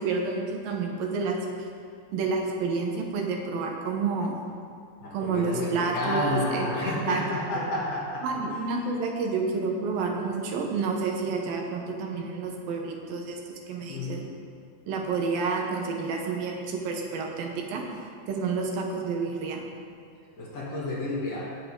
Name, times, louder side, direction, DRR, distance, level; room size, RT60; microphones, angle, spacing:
voice 1, 0.0-1.4 2.1-4.4 5.1-7.2 7.6-7.7 8.2-13.4 13.7-14.2 14.9-17.8 18.3-19.7, right 4 dB, 80° right, 1 dB, 2.9 m, -29 dB
voice 2, 5.0-8.2 13.9-14.2 20.4-21.5, left 1 dB, 50° left, -5 dB, 3.5 m, -30 dB
18.0 x 7.6 x 3.8 m, 2.3 s
omnidirectional pair, 4.1 m